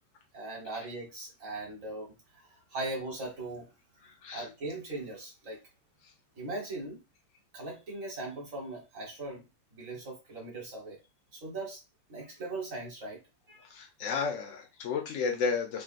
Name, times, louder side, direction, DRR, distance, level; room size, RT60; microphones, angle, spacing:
voice 1, 0.3-3.7 4.3-5.6 6.4-7.0 7.5-9.4 9.8-11.0 11.3-11.8 12.1-13.2 13.5-13.6, right 2 dB, 45° right, -1 dB, 1.5 m, -39 dB
voice 2, 13.7-15.8, left 5 dB, 60° left, 3 dB, 0.9 m, -32 dB
3.8 x 2.3 x 2.5 m, 0.26 s
omnidirectional pair, 2.1 m